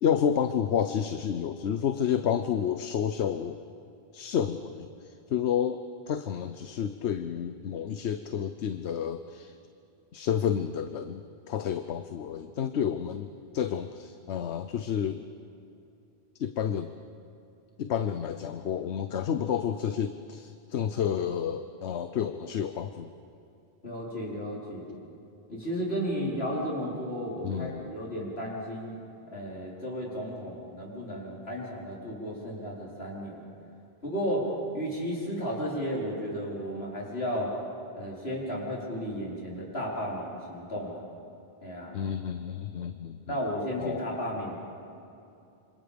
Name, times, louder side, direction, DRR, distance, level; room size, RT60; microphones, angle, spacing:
voice 1, 0.0-3.6 4.1-9.5 10.1-11.2 11.5-13.3 13.5-15.2 16.4-16.9 17.8-23.1 27.4-27.9 41.9-43.4 43.8-44.0, left 8 dB, 85° left, 9 dB, 1.0 m, -30 dB
voice 2, 23.8-25.0 25.5-29.0 29.3-33.4 34.0-37.5 37.9-41.1 41.6-42.0 43.3-44.6, equal, 70° left, -4 dB, 4.9 m, -33 dB
26.5 x 26.5 x 5.2 m, 2.7 s
omnidirectional pair, 1.1 m